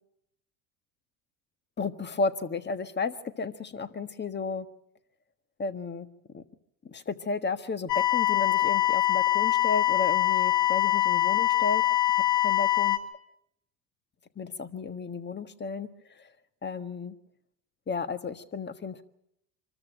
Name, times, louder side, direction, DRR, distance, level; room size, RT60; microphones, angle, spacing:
voice 1, 1.8-4.7 5.6-6.4 6.8-11.8 12.4-13.0 14.3-16.3 16.6-17.1 17.9-19.0, left 4 dB, 20° left, 10 dB, 1.4 m, -33 dB
sound 1, 7.9-13.0, left 14 dB, 85° left, 1.8 m, -24 dB
25.0 x 14.0 x 9.0 m, 0.80 s
supercardioid pair, 95°, 46 cm